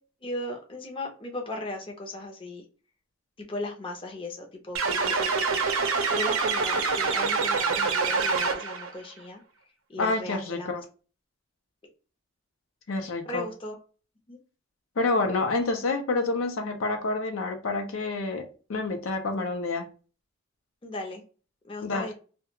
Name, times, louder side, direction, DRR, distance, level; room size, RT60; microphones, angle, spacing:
voice 1, 0.2-2.6 3.4-5.3 5.8-9.4 9.9-10.8 13.3-13.8 14.3-14.4 20.8-21.2 21.6-22.1, left 1 dB, 25° left, 0.6 m, -37 dB
sound 1, 4.7-8.9, right 4 dB, 75° right, 0.5 m, -26 dB
voice 2, 10.0-10.8 12.9-13.5 15.0-19.9 21.8-22.1, left 3 dB, 70° left, 0.5 m, -28 dB
2.3 x 2.2 x 2.8 m
head